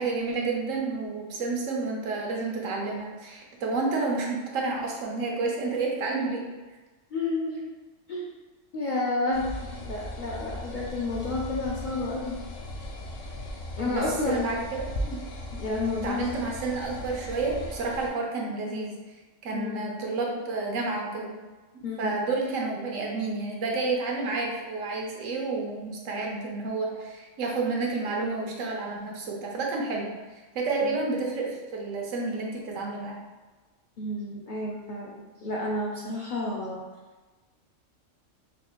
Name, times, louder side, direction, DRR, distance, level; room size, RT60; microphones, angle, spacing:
voice 1, 0.0-6.4 13.8-15.2 16.0-18.9 19.4-21.3 21.7-30.1 30.5-33.2, right 3 dB, 85° right, -1 dB, 1.1 m, -30 dB
voice 2, 7.1-7.7 8.1-8.3 8.7-12.4 13.8-14.5 15.5-16.5 19.5-19.9 21.8-22.2 30.8-30.9 34.0-36.8, left 2 dB, 60° left, -3 dB, 0.5 m, -31 dB
sound 1, 9.3-18.1, left 1 dB, 85° left, 1.0 m, -38 dB
4.4 x 2.4 x 2.9 m, 1.2 s
omnidirectional pair, 1.3 m